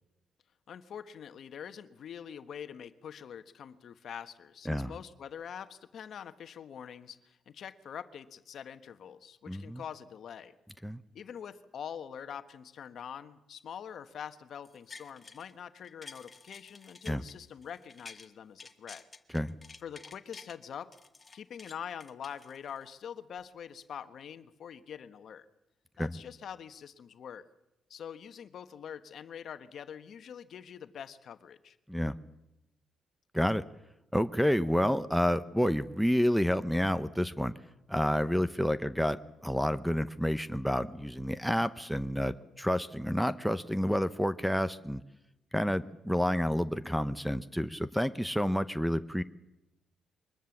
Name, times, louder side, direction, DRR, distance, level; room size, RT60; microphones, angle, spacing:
voice 1, 0.7-10.5 11.1-19.0 19.8-20.9 21.3-25.5 26.0-27.5 27.9-31.8, left 8 dB, 60° left, 10 dB, 1.3 m, -44 dB
voice 2, 9.5-9.8 10.8-11.0 17.1-17.2 19.3-19.5 26.0-26.1 31.9-32.2 33.3-33.6 34.1-37.5 37.9-45.0 45.5-49.2, equal, ahead, 14 dB, 0.8 m, -29 dB
sound 1, 14.6-15.5 15.8-18.3 18.6-20.6 20.9-22.9 23.4-23.5, left 4 dB, 25° left, 1.6 m, -51 dB
23.0 x 20.5 x 7.3 m, 0.92 s
cardioid pair, 110°, 0 cm